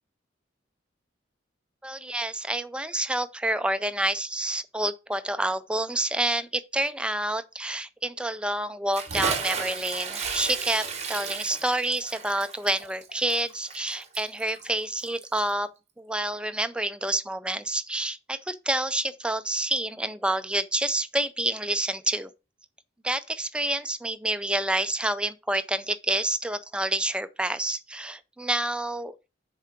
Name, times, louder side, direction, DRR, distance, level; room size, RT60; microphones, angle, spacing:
voice 1, 1.8-15.7 16.0-22.3 23.0-29.1, right 1 dB, 5° right, 0.4 m, -28 dB
Bathtub (filling or washing) / Splash splatter, 8.9-15.5, right 5 dB, 35° right, 1.1 m, -34 dB
7.1 x 4.6 x 5.9 m
head